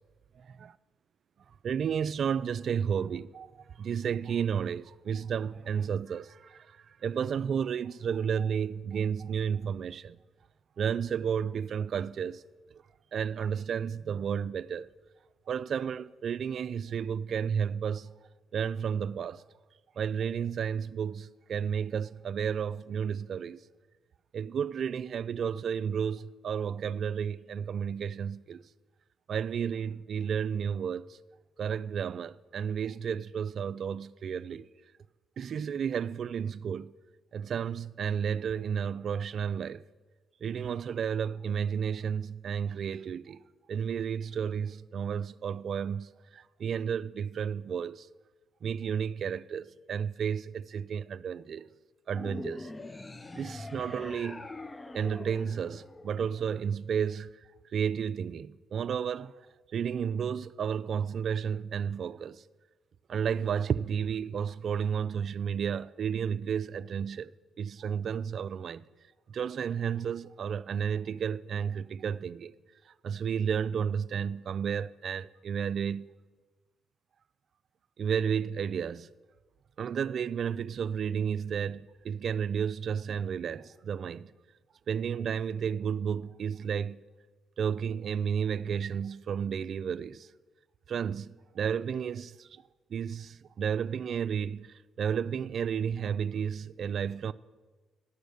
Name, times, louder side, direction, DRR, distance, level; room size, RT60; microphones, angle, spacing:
voice 1, 1.6-10.2 10.8-12.4 12.7-12.8 13.1-14.9 15.5-18.1 18.5-19.4 20.0-23.6 24.3-28.6 29.3-31.2 31.6-34.7 35.4-36.9 37.3-39.8 40.4-43.4 43.7-48.1 48.6-51.7 52.1-52.7 53.3-54.5 54.9-57.3 57.7-59.5 59.7-62.4 63.1-67.3 67.6-68.9 69.3-72.5 73.0-76.1 78.0-79.1 79.8-84.3 84.9-87.0 87.6-90.3 90.9-92.6 92.9-97.3, right 7 dB, 60° right, 0.3 m, -32 dB
sound 1, 52.1-56.6, left 2 dB, 20° left, 0.5 m, -43 dB
11.5 x 6.9 x 6.4 m
cardioid pair, 90°, 0 cm